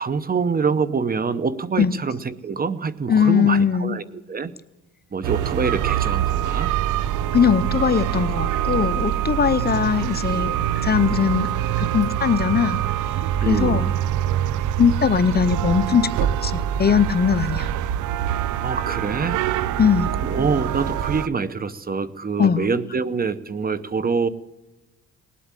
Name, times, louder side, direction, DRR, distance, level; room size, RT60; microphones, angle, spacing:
voice 1, 0.0-4.5 5.1-6.7 13.4-13.9 16.6-16.7 18.6-19.4 20.2-24.3, right 5 dB, 30° right, 16 dB, 0.9 m, -25 dB
voice 2, 3.1-4.0 7.3-11.5 11.8-12.8 13.4-13.9 14.8-17.7 19.8-20.1 22.4-22.7, left 7 dB, 30° left, 15 dB, 0.7 m, -20 dB
sound 1, 5.2-21.3, right 11 dB, 85° right, 0.6 m, -24 dB
19.0 x 8.4 x 9.0 m, 1.0 s
cardioid pair, 90°, 30 cm